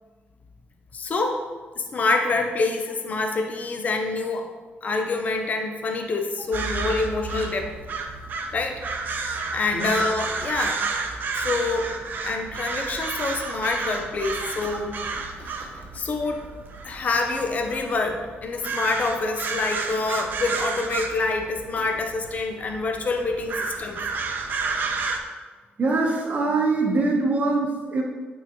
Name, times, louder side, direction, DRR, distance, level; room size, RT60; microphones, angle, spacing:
voice 1, 0.9-1.4 1.8-4.5 4.8-7.7 8.5-8.8 9.3-10.8 11.3-11.9 12.2-16.4 16.8-24.0, left 3 dB, 40° left, 4 dB, 0.5 m, -26 dB
sound 1, 6.5-25.2, right 4 dB, 50° right, 0.6 m, -31 dB
voice 2, 25.8-28.0, right 3 dB, 35° right, 0 dB, 1.0 m, -23 dB
8.5 x 3.7 x 3.0 m, 1.4 s
cardioid pair, 135°, 4 cm